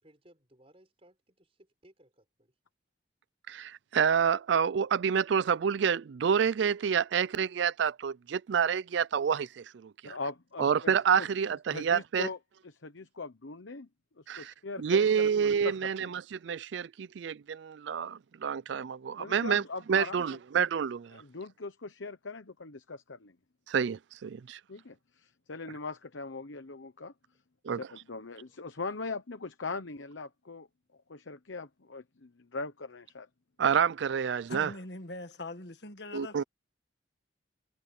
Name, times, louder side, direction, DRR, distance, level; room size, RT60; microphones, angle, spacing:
voice 1, 0.0-2.6 28.4-28.6, right 1 dB, 30° right, 5.8 m, -62 dB
voice 2, 3.5-10.2 10.6-12.3 14.3-19.6 19.9-21.2 23.7-24.6 27.6-27.9 33.6-34.7 36.1-36.4, right 7 dB, 70° right, 0.4 m, -28 dB
voice 3, 10.0-10.9 11.7-12.4 12.6-13.9 14.2-16.1 19.2-20.2 21.1-23.4 24.7-27.1 27.7-30.7 30.9-33.3, left 3 dB, 90° left, 1.0 m, -41 dB
voice 4, 34.5-36.4, left 2 dB, 60° left, 1.8 m, -42 dB
head